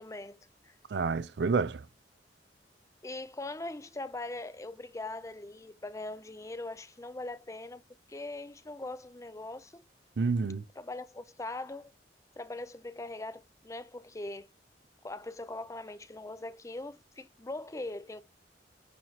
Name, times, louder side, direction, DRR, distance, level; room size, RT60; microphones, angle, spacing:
voice 1, 0.0-0.7 3.0-7.8 8.1-9.8 10.8-11.9 12.4-14.5 15.0-18.2, left 2 dB, 15° left, 0.5 m, -41 dB
voice 2, 0.9-1.9 10.2-10.6, right 4 dB, 70° right, 0.5 m, -29 dB
9.4 x 4.8 x 2.9 m
head